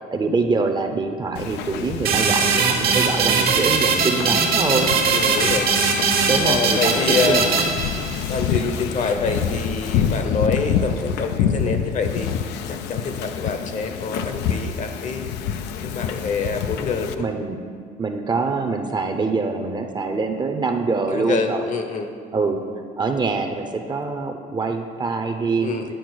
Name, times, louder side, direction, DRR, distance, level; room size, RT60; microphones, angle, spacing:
voice 1, 0.1-4.9 6.3-7.7 17.2-17.6 18.0-21.7 22.3-22.6 23.0-25.9, right 4 dB, 25° right, 5 dB, 0.6 m, -24 dB
Wind / Ocean, 1.3-17.1, left 8 dB, 90° left, 0.5 m, -27 dB
sound 1, 2.0-8.4, right 5 dB, 65° right, 1.2 m, -20 dB
voice 2, 5.1-5.7 6.4-7.5 8.3-12.3 12.7-15.3 15.8-17.3 21.1-22.1 25.6-25.9, left 4 dB, 45° left, 6 dB, 0.8 m, -26 dB
9.2 x 4.5 x 6.2 m, 2.1 s
cardioid pair, 110°, 17 cm